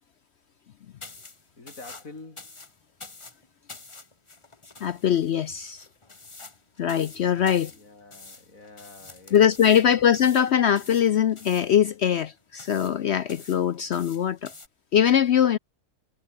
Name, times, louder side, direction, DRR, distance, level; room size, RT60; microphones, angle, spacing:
sound 1, 1.0-14.7, left 3 dB, 20° left, 1.2 m, -48 dB
voice 1, 1.6-2.6 7.7-10.1, left 3 dB, 55° left, 4.3 m, -47 dB
voice 2, 4.8-5.8 6.8-7.7 9.3-14.5 14.9-15.6, left 9 dB, 70° left, 0.6 m, -22 dB
omnidirectional pair, 1.8 m